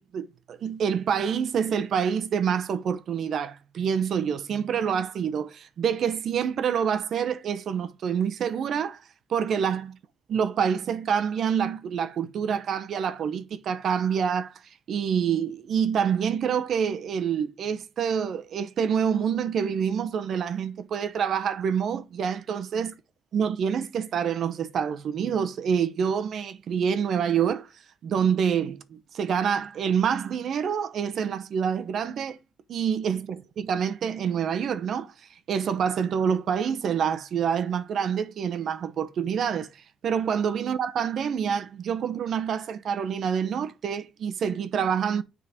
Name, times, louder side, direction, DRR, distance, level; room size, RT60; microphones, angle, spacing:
voice 1, 0.0-9.0 9.3-10.0 10.3-14.6 14.9-22.9 23.3-27.7 28.0-32.4 32.7-35.1 35.5-45.2, right 7 dB, 65° right, 0.9 m, -27 dB
9.5 x 3.9 x 5.0 m
cardioid pair, 90°, 0 cm